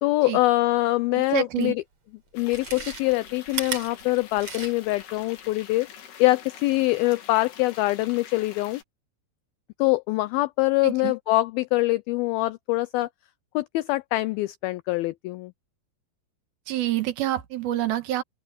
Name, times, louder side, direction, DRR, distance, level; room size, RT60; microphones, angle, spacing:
voice 1, 0.0-1.8 2.3-5.9 6.2-8.8 9.8-13.1 13.5-15.5, left 19 dB, 85° left, 2.1 m, -24 dB
voice 2, 1.1-1.7 10.8-11.1 16.7-18.2, right 13 dB, 70° right, 2.8 m, -27 dB
Chewing mastication, 1.6-1.7 2.4-5.0 5.4-5.5, right 5 dB, 35° right, 5.3 m, -35 dB
sound 1, 2.3-8.8, left 8 dB, 70° left, 4.5 m, -45 dB
open air
omnidirectional pair, 4.9 m